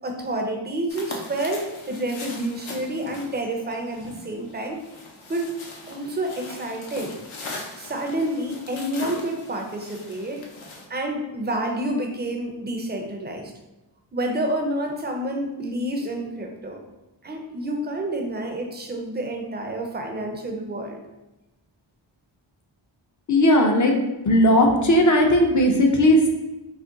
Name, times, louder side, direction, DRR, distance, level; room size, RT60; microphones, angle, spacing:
voice 1, 0.0-4.8 5.3-5.5 5.9-7.1 7.8-10.4 10.9-13.5 14.1-16.8 17.2-21.0, right 1 dB, 20° right, 2 dB, 0.5 m, -29 dB
sound 1, 0.9-10.9, left 2 dB, 75° left, 0.7 m, -40 dB
voice 2, 23.3-24.0 24.2-26.3, left 1 dB, 40° left, 2 dB, 0.5 m, -17 dB
2.5 x 2.2 x 3.7 m, 1.0 s
cardioid pair, 65°, 48 cm